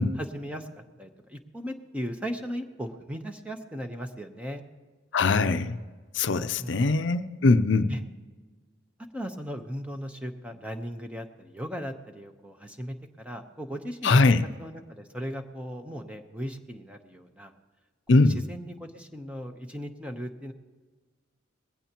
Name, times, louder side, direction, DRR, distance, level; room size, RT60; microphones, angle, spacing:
voice 1, 0.2-4.6 6.6-6.9 7.9-8.0 9.1-17.5 18.1-20.5, equal, 5° right, 5 dB, 0.9 m, -37 dB
voice 2, 5.1-5.8 6.1-7.9 14.0-14.4 18.1-18.4, left 3 dB, 65° left, 11 dB, 0.6 m, -21 dB
20.5 x 16.0 x 3.0 m, 1.4 s
head